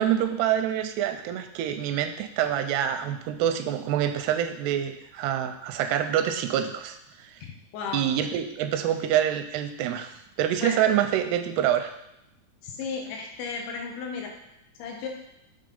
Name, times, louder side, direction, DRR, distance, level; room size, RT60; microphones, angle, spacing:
voice 1, 0.0-7.4 7.9-11.9, right 10 dB, 85° right, 8 dB, 2.6 m, -26 dB
voice 2, 7.4-8.1 10.6-10.8 12.6-14.3 14.8-15.1, left 5 dB, 75° left, 1 dB, 2.8 m, -34 dB
7.7 x 3.3 x 5.3 m, 0.82 s
omnidirectional pair, 4.6 m